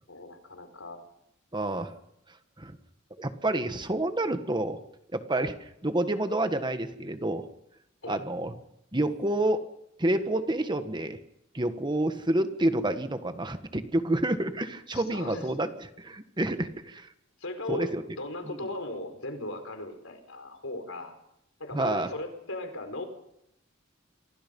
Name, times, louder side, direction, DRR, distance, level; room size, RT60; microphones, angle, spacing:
voice 1, 0.1-1.0 8.0-8.3 14.9-15.5 17.4-21.1 21.6-23.0, left 2 dB, 80° left, 7 dB, 4.9 m, -37 dB
voice 2, 1.5-1.9 2.6-2.8 3.2-4.8 5.1-7.5 8.1-8.6 8.9-9.6 10.0-11.2 11.5-15.7 16.0-17.1 17.7-18.0 18.5-18.6 21.7-22.1, right 1 dB, 20° right, 8 dB, 1.5 m, -28 dB
28.0 x 23.5 x 5.5 m, 0.80 s
head